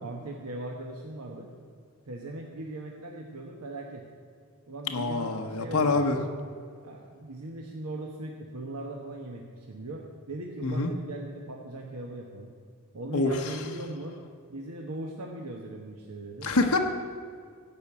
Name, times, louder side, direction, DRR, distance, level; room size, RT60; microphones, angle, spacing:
voice 1, 0.0-1.5 2.0-4.0 4.7-6.0 6.8-12.5 12.9-14.1 14.5-16.5, right 2 dB, 80° right, 1 dB, 1.1 m, -39 dB
voice 2, 4.9-6.2 10.6-10.9 13.1-13.5 16.4-16.8, left 3 dB, 75° left, 3 dB, 0.9 m, -26 dB
15.0 x 5.3 x 8.4 m, 2.1 s
head